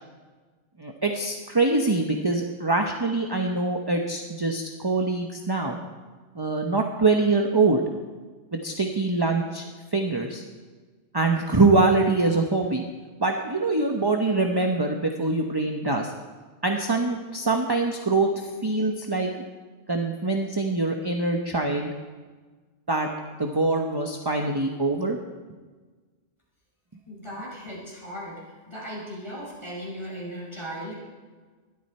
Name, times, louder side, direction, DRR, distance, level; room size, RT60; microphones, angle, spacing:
voice 1, 0.8-5.8 6.3-7.8 8.6-9.6 9.9-10.4 11.1-12.8 13.2-16.1 16.6-19.3 19.9-21.9 22.9-23.1 23.4-25.2, right 3 dB, 20° right, 3 dB, 1.0 m, -24 dB
voice 2, 27.1-28.4 28.7-31.0, equal, 25° left, -5 dB, 5.7 m, -37 dB
20.5 x 13.0 x 4.4 m, 1.4 s
omnidirectional pair, 1.2 m